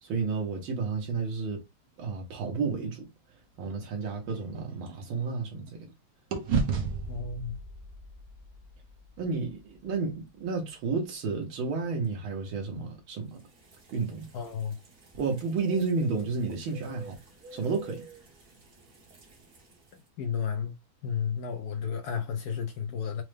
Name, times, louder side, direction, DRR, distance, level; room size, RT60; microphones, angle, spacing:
voice 1, 0.0-1.6 2.0-3.1 3.6-5.9 9.2-13.4 13.9-14.3 15.2-17.2 17.5-18.1, right 4 dB, 85° right, 1.8 m, -31 dB
sound 1, 3.6-5.9 6.3-10.5, right 5 dB, 60° right, 1.0 m, -35 dB
voice 2, 7.1-7.6 14.3-14.8 19.9-20.8 21.0-23.2, left 7 dB, 70° left, 0.9 m, -32 dB
sound 2, 13.4-20.0, right 2 dB, 40° right, 1.0 m, -50 dB
4.6 x 2.1 x 3.2 m
omnidirectional pair, 2.2 m